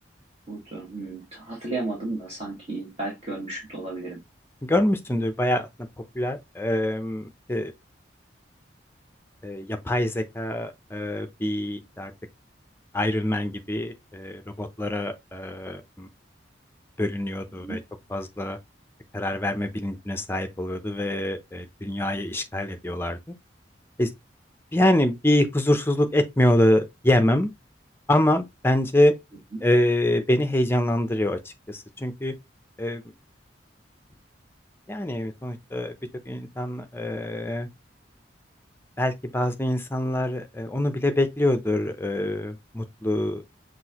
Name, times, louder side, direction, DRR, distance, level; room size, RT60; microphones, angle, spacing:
voice 1, 0.5-4.2 17.6-17.8 29.5-29.6, right 2 dB, 35° right, 1.7 m, -33 dB
voice 2, 4.6-5.7 6.1-7.7 9.4-12.1 12.9-16.1 17.0-17.8 18.1-18.6 19.1-23.3 24.0-24.1 24.7-27.5 28.1-29.1 29.6-31.4 31.7-32.3 32.8-33.0 34.9-35.9 36.3-37.7 39.0-43.4, left 1 dB, 10° left, 0.6 m, -25 dB
6.1 x 2.6 x 2.9 m
head